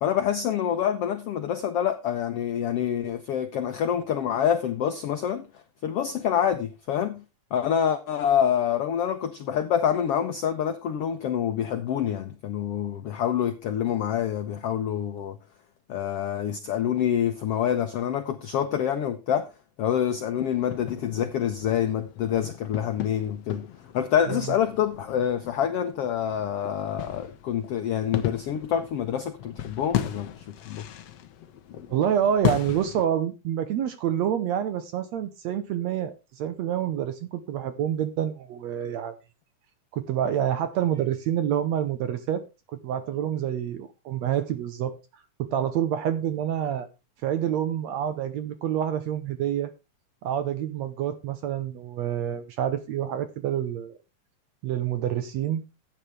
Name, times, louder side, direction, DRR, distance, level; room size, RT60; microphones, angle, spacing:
voice 1, 0.0-5.5 5.8-7.2 7.5-15.4 15.9-19.5 19.8-23.7 23.9-30.8, left 9 dB, 90° left, 1.3 m, -26 dB
sound 1, 20.4-33.0, left 12 dB, 65° left, 1.7 m, -35 dB
voice 2, 31.9-39.2 39.9-42.4 42.7-44.9 45.4-46.9 47.2-49.7 50.2-54.0 54.6-55.6, right 10 dB, 70° right, 1.7 m, -27 dB
14.5 x 9.0 x 3.3 m
omnidirectional pair, 3.9 m